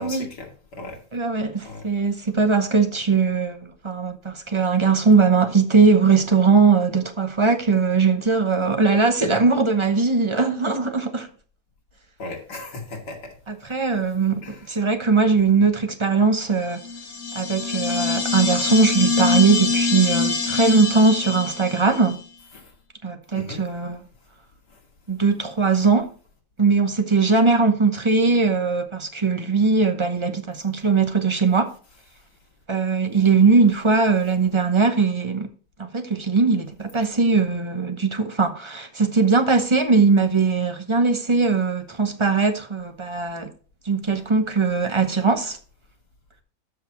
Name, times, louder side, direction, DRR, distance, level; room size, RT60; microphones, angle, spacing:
voice 1, 0.0-1.0 1.6-1.8 12.2-13.3 14.4-14.6 22.5-22.7 23.3-23.6, left 2 dB, 70° left, 2.9 m, -36 dB
voice 2, 1.1-11.3 13.5-16.8 17.3-22.2 23.0-24.0 25.1-26.1 26.6-31.7 32.7-35.5 35.8-43.5 43.8-45.6, right 4 dB, 30° right, 0.5 m, -20 dB
sound 1, 16.7-22.1, left 4 dB, 50° left, 2.1 m, -24 dB
13.0 x 6.0 x 3.0 m
omnidirectional pair, 1.8 m